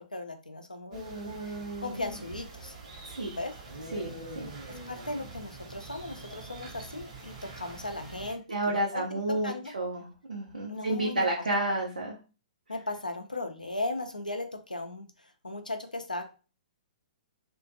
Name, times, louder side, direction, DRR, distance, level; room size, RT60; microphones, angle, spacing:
voice 1, 0.1-1.0 1.4-2.7 3.3-3.5 4.7-9.2 9.4-9.7 10.7-11.4 12.7-16.2, left 2 dB, 90° left, 6 dB, 0.4 m, -37 dB
sound 1, 0.9-8.3, right 3 dB, 55° right, 0.8 m, -43 dB
voice 2, 3.0-3.4 3.9-4.5 8.5-12.2, right 1 dB, 75° right, -2 dB, 0.5 m, -31 dB
2.4 x 2.2 x 2.6 m, 0.34 s
figure-of-eight pair, 115°, 4 cm